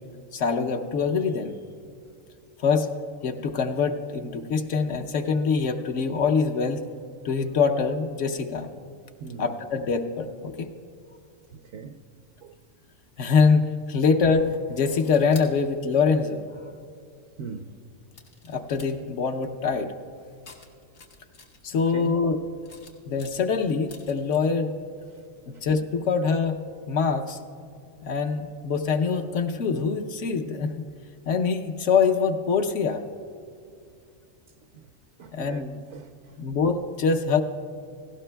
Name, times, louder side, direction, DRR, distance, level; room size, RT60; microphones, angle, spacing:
voice 1, 0.3-1.5 2.6-2.9 3.2-6.8 7.2-8.7 9.4-10.7 13.2-16.4 18.5-19.9 21.6-22.4 23.1-24.7 25.6-26.6 26.9-27.4 28.0-30.7 31.3-33.0 35.3-35.7 36.4-37.4, left 5 dB, 70° left, 1.0 m, -24 dB
voice 2, 9.2-9.5 11.5-12.0 12.4-12.5 17.4-17.7 21.8-22.1 25.1-25.2 34.7-34.9 35.2-36.4, right 6 dB, 70° right, 0.9 m, -39 dB
sound 1, 14.9-15.5 16.6-16.7 18.1-18.9 20.4-21.8 22.6-24.4, left 4 dB, 85° left, 1.7 m, -47 dB
18.0 x 16.0 x 2.2 m
omnidirectional pair, 1.4 m